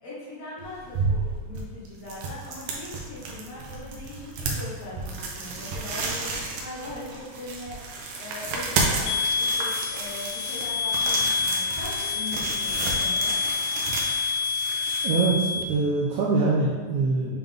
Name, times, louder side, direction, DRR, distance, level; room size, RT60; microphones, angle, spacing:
voice 1, 0.0-7.8 8.2-13.4, left 2 dB, 60° left, -8 dB, 2.1 m, -40 dB
sound 1, 0.6-15.7, right 3 dB, 75° right, 2.0 m, -32 dB
High pitched ringing, 9.1-15.6, left 5 dB, 80° left, 1.9 m, -27 dB
voice 2, 15.0-17.4, right 3 dB, 90° right, -4 dB, 1.6 m, -24 dB
7.3 x 3.6 x 3.5 m, 1.5 s
omnidirectional pair, 4.0 m